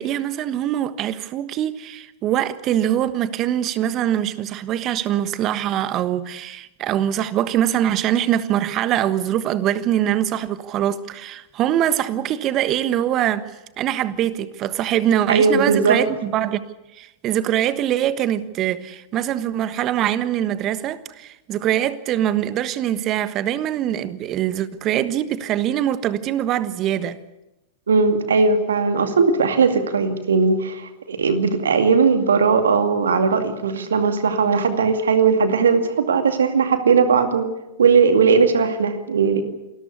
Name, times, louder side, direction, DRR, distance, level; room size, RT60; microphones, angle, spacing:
voice 1, 0.0-13.5 13.8-16.6 16.9-27.2, right 11 dB, 35° right, 1.3 m, -23 dB
voice 2, 15.3-16.0 27.9-37.5 37.8-39.4, right 5 dB, 75° right, 2.3 m, -18 dB
28.0 x 13.5 x 8.2 m
figure-of-eight pair, 100°, 0 cm